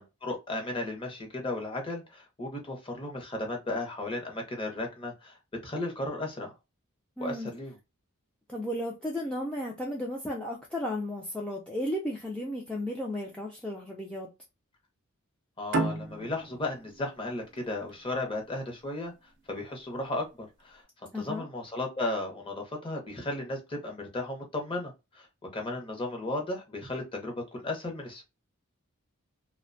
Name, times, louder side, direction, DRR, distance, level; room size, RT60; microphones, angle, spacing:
voice 1, 0.0-5.4 5.6-6.5 7.2-7.7 15.6-19.1 19.5-20.8 21.1-25.3 25.5-28.2, left 2 dB, 25° left, 0.7 m, -35 dB
voice 2, 7.2-7.5 8.5-14.3 21.1-21.5, left 1 dB, 5° left, 0.3 m, -34 dB
sound 1, 15.7-18.9, right 2 dB, 55° right, 0.5 m, -33 dB
2.5 x 2.2 x 2.4 m
head